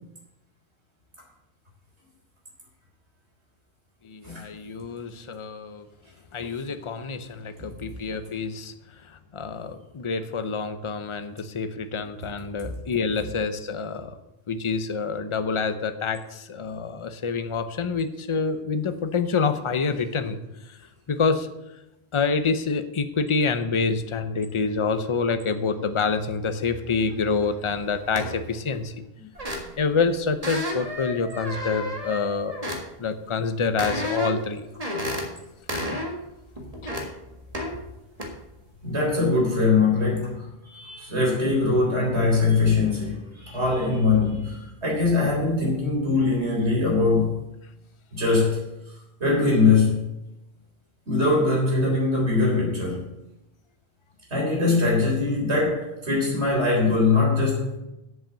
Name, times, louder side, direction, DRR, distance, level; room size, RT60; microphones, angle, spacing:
voice 1, 4.0-5.9 6.3-8.7 9.1-14.2 14.5-20.4 21.1-21.5 22.1-29.0 29.8-32.6 33.0-34.7 35.7-36.0 36.8-37.0, left 4 dB, 30° left, 9 dB, 0.7 m, -27 dB
sound 1, 28.2-28.5 29.4-29.9 30.4-32.8 33.8-34.5 34.8-35.3 35.7-36.2 36.6-37.1 37.5-37.8 38.2-38.3, left 1 dB, 35° right, 1.9 m, -31 dB
voice 2, 38.8-47.4 48.1-48.6 49.2-50.0 51.1-53.0 54.3-57.8, left 3 dB, 85° right, -2 dB, 4.0 m, -22 dB
8.0 x 7.5 x 7.6 m, 0.93 s
omnidirectional pair, 1.1 m